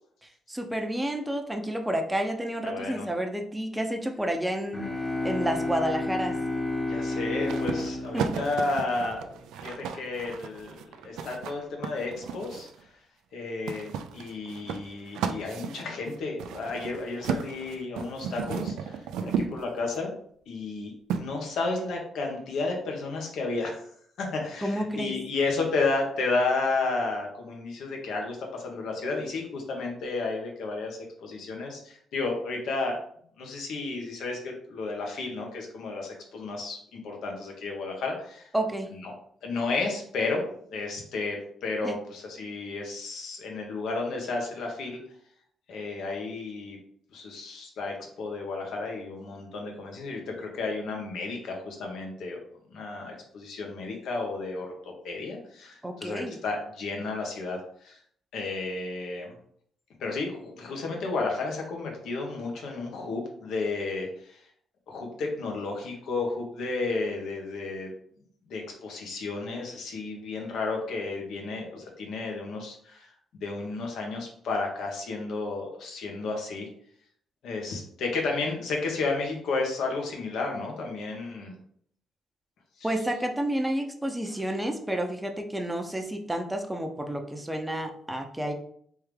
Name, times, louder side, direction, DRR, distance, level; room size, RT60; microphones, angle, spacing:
voice 1, 0.5-4.8 5.2-6.4 8.1-8.3 19.2-19.5 24.6-25.1 38.5-38.9 41.8-42.0 55.8-56.4 82.8-88.5, right 1 dB, 10° right, 4 dB, 0.6 m, -30 dB
voice 2, 2.6-3.1 6.8-12.9 13.3-20.1 20.5-23.9 24.2-33.0 33.4-38.5 39.0-39.1 39.4-40.4 40.7-45.0 45.7-46.8 47.1-52.4 52.7-58.0 58.3-59.4 60.0-64.4 64.9-67.9 68.5-76.7 77.4-81.6 82.8-82.9, left 3 dB, 75° left, 1 dB, 1.1 m, -32 dB
sound 1, 4.7-9.4, left 2 dB, 20° left, 1.0 m, -31 dB
sound 2, 7.5-12.8 13.7-20.0 21.1-21.2, right 7 dB, 85° right, 0.3 m, -34 dB
3.5 x 3.4 x 3.3 m, 0.63 s
cardioid pair, 90°, 0 cm